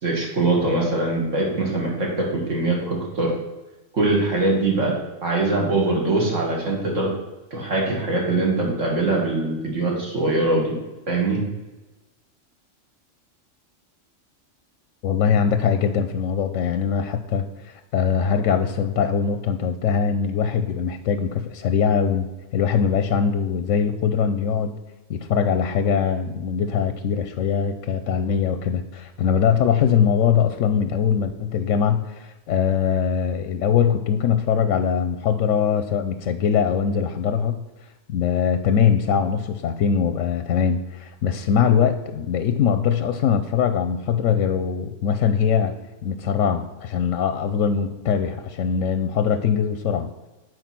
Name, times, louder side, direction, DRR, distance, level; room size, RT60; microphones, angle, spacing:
voice 1, 0.0-3.3 3.9-4.9 5.2-7.1 7.5-10.7 11.1-11.4, right 2 dB, 70° right, -2 dB, 2.2 m, -22 dB
voice 2, 15.0-24.7 25.1-37.6 38.1-45.7 46.0-50.1, left 7 dB, 90° left, 9 dB, 1.0 m, -22 dB
9.2 x 4.6 x 5.9 m, 1.1 s
omnidirectional pair, 1.3 m